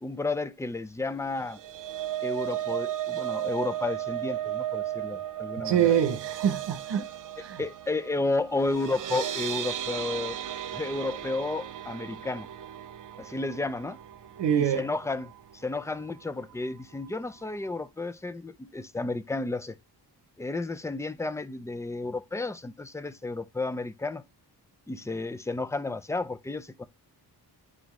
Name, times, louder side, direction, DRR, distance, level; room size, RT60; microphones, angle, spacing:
voice 1, 0.0-1.6 2.2-5.9 7.6-10.4 10.7-12.5 13.2-14.0 14.6-19.7 20.4-24.2 24.9-26.9, left 3 dB, 5° left, 0.4 m, -32 dB
sound 1, 1.3-15.5 15.9-16.1 16.4-16.5, right 12 dB, 50° right, 0.5 m, -35 dB
voice 2, 5.6-7.1 7.4-7.6 14.4-14.9, right 9 dB, 85° right, 0.8 m, -25 dB
9.4 x 3.8 x 3.0 m
wide cardioid pair, 150°, 41 cm